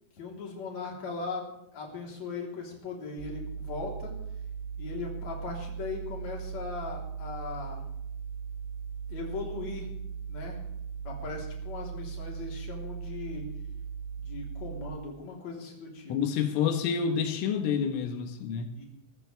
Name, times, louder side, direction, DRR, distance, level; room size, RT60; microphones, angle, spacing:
voice 1, 0.2-4.1 4.8-7.8 9.1-9.9 10.3-10.6 11.0-13.5 14.2-16.1 18.8-18.9, left 4 dB, 40° left, -1 dB, 4.5 m, -39 dB
sound 1, 3.2-15.0, right 6 dB, 85° right, 1.9 m, -38 dB
voice 2, 16.1-18.8, left 7 dB, 90° left, 6 dB, 3.9 m, -28 dB
24.0 x 14.0 x 3.5 m, 0.80 s
omnidirectional pair, 5.5 m